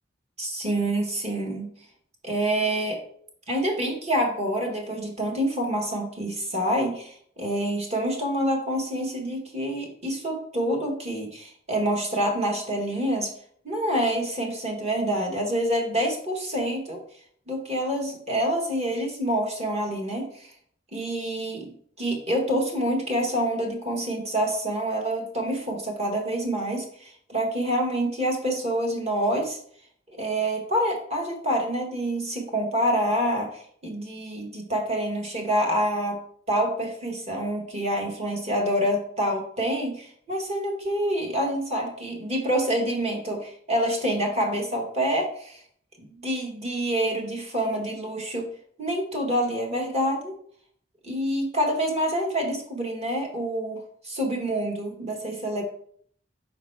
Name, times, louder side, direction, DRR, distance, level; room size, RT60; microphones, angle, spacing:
voice 1, 0.4-1.7 2.2-3.0 3.5-13.3 13.6-17.0 17.5-20.5 20.9-21.7 22.0-29.6 30.1-36.2 36.5-45.6 46.0-48.5 48.8-50.3 51.0-55.6, equal, 35° right, 0 dB, 1.4 m, -27 dB
5.3 x 4.0 x 4.6 m, 0.62 s
head